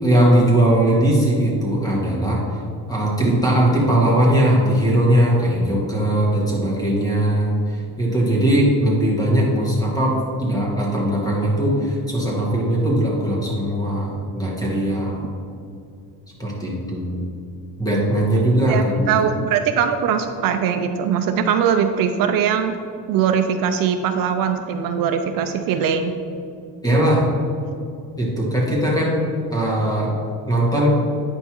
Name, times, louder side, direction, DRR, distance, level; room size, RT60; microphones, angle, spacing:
voice 1, 0.0-2.4 2.9-15.2 16.4-17.2 17.8-19.1 26.8-27.2 28.2-29.2 29.5-30.1 30.5-30.9, right 1 dB, 10° left, -4 dB, 1.5 m, -19 dB
voice 2, 18.4-22.8 23.1-26.1, right 7 dB, 65° right, 7 dB, 0.5 m, -21 dB
9.0 x 5.4 x 3.0 m, 2.4 s
cardioid pair, 150°, 37 cm